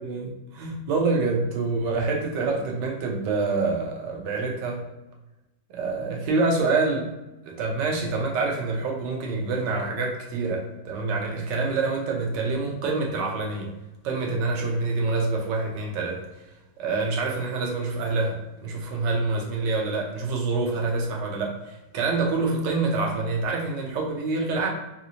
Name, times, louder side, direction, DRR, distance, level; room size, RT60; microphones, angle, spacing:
voice 1, 0.0-4.8 5.7-7.1 7.5-13.7 14.0-16.2 16.8-24.7, right 3 dB, 80° right, 0 dB, 1.3 m, -26 dB
3.2 x 2.8 x 2.7 m, 1.0 s
omnidirectional pair, 1.9 m